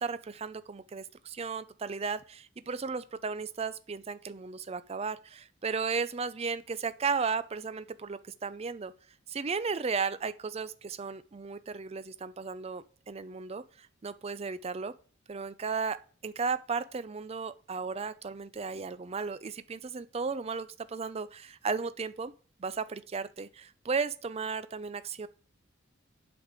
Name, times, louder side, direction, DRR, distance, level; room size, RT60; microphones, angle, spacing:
voice 1, 0.0-8.9 9.3-13.6 14.0-14.9 15.3-16.0 16.2-22.3 22.6-25.3, right 5 dB, 30° right, 0.4 m, -35 dB
8.0 x 5.2 x 7.3 m
head